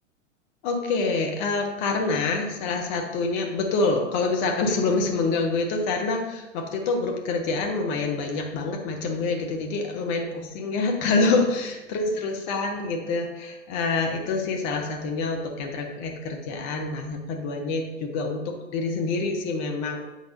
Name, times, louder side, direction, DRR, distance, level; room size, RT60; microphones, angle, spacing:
voice 1, 0.6-20.0, left 3 dB, 35° left, 3 dB, 0.9 m, -26 dB
8.2 x 5.1 x 2.5 m, 1.0 s
figure-of-eight pair, 100°, 39 cm